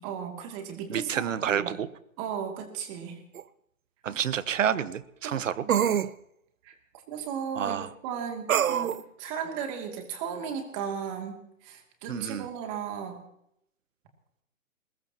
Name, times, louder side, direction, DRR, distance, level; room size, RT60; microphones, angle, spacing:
voice 1, 0.0-1.8 2.2-3.2 5.2-5.7 6.6-6.7 7.1-13.2, right 7 dB, 25° right, 3 dB, 2.6 m, -36 dB
voice 2, 0.9-1.9 4.0-5.6 7.5-7.9 12.1-12.5, right 8 dB, 65° right, 14 dB, 1.2 m, -29 dB
sound 1, 3.3-3.4 5.7-6.1 8.5-9.0, right 9 dB, 85° right, 0.9 m, -24 dB
23.0 x 21.0 x 2.9 m, 0.76 s
hypercardioid pair, 165°, 40 cm